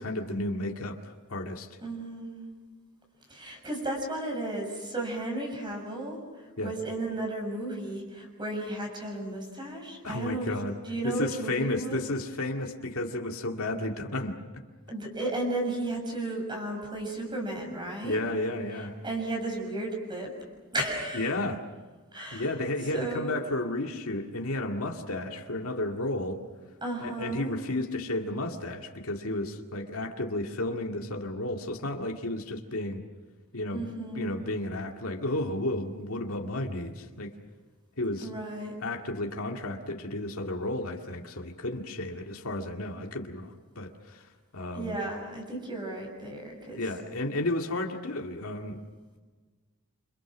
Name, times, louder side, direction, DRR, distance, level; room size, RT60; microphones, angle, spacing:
voice 1, 0.0-1.8 6.6-6.7 10.0-10.7 11.0-14.4 18.0-19.0 21.1-21.6 22.3-26.4 27.0-33.0 33.5-33.9 34.2-37.3 38.0-38.3 38.8-44.3 44.5-45.0 46.8-48.8, left 1 dB, 80° left, 2 dB, 2.1 m, -32 dB
voice 2, 1.8-2.5 3.3-10.5 10.8-12.0 14.9-18.2 18.7-20.3 20.7-21.3 22.1-22.5 22.9-23.4 26.8-27.6 33.7-34.3 38.2-38.7 44.7-46.8, right 1 dB, 20° right, 1 dB, 6.9 m, -34 dB
29.0 x 27.5 x 6.2 m, 1.4 s
head